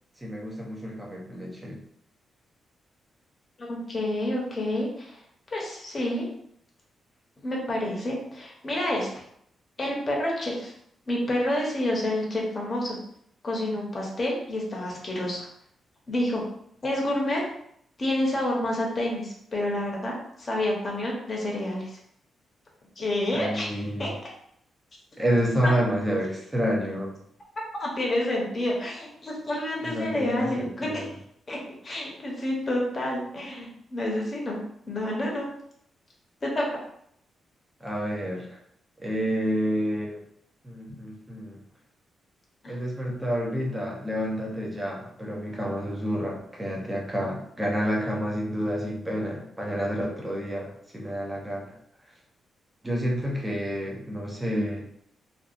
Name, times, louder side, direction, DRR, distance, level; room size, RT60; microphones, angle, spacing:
voice 1, 0.2-1.8 23.3-24.1 25.2-27.1 29.8-31.1 37.8-38.6 39.0-40.2 40.6-41.6 42.7-51.8 52.8-54.9, equal, 10° right, -2 dB, 0.6 m, -29 dB
voice 2, 3.6-5.2 5.5-6.3 7.4-9.1 9.8-10.7 11.1-13.0 13.4-15.5 16.1-16.4 16.8-17.4 18.0-22.0 23.0-24.1 25.6-25.7 27.8-31.1 31.5-31.6 31.8-34.6 34.9-35.5 36.4-36.7 42.6-42.7, left 1 dB, 30° left, -2 dB, 0.7 m, -29 dB
2.7 x 2.3 x 2.4 m, 0.70 s
cardioid pair, 135°, 0 cm